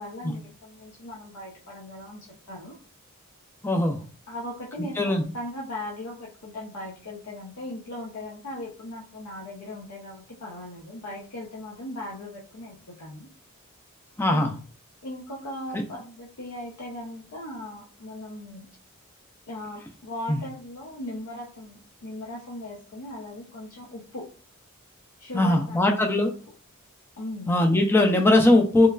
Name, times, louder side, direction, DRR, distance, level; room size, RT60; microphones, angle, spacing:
voice 1, 0.0-2.8 3.8-3.9 4.3-5.0 5.3-13.3 14.3-14.5 15.0-18.7 19.5-24.3 25.2-25.9 27.2-27.5, left 1 dB, 90° left, -4 dB, 0.6 m, -38 dB
voice 2, 3.6-4.0 5.0-5.2 14.2-14.5 15.7-15.8 20.3-20.4 25.3-26.3 27.5-28.9, left 1 dB, 10° left, 3 dB, 0.3 m, -20 dB
3.0 x 2.2 x 2.3 m, 0.39 s
head